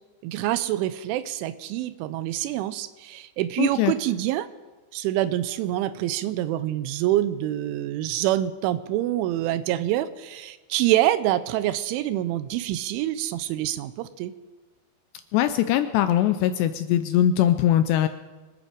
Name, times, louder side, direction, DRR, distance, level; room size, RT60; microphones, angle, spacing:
voice 1, 0.2-4.5 4.9-14.3, right 13 dB, 85° right, 13 dB, 3.0 m, -26 dB
voice 2, 3.6-3.9 15.3-18.1, left 11 dB, 85° left, 10 dB, 2.4 m, -21 dB
25.5 x 9.9 x 5.0 m, 1.2 s
omnidirectional pair, 5.5 m